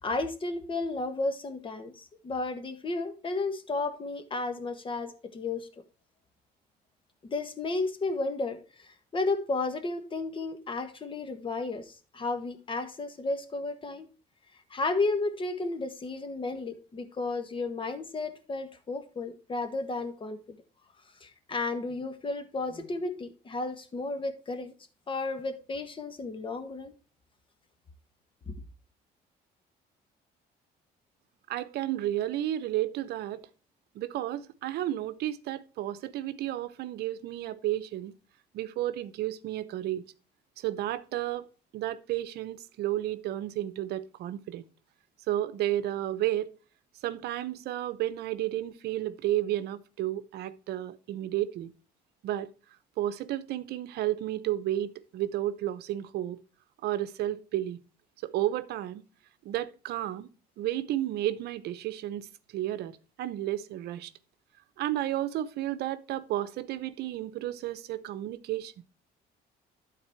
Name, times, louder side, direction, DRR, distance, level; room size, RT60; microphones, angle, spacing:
voice 1, 0.0-5.7 7.2-14.1 14.7-20.6 21.2-24.7 25.1-26.9 28.5-28.6, left 3 dB, 30° left, 1.4 m, -33 dB
voice 2, 31.5-33.5 33.9-38.1 38.5-40.0 40.6-41.5 41.7-44.7 45.3-46.5 47.0-51.7 52.2-52.5 53.0-56.4 56.8-57.8 58.2-59.0 59.4-60.3 60.6-64.1 64.8-68.8, right 13 dB, 75° right, 0.8 m, -32 dB
12.0 x 4.1 x 4.5 m
cardioid pair, 110°, 17 cm